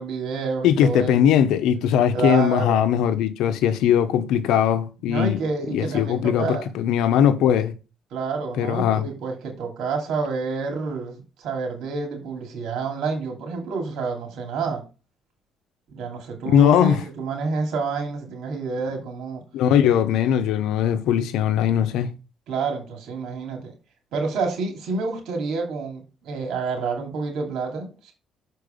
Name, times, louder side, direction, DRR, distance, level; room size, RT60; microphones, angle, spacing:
voice 1, 0.0-1.1 2.1-2.8 5.0-6.7 8.1-14.8 15.9-19.4 22.5-23.7 24.1-28.1, right 4 dB, 80° right, 2.7 m, -28 dB
voice 2, 0.6-5.4 5.7-7.7 8.6-9.0 16.5-17.0 19.5-22.1, left 9 dB, 90° left, 0.8 m, -20 dB
6.6 x 4.6 x 5.2 m
cardioid pair, 100°, 0 cm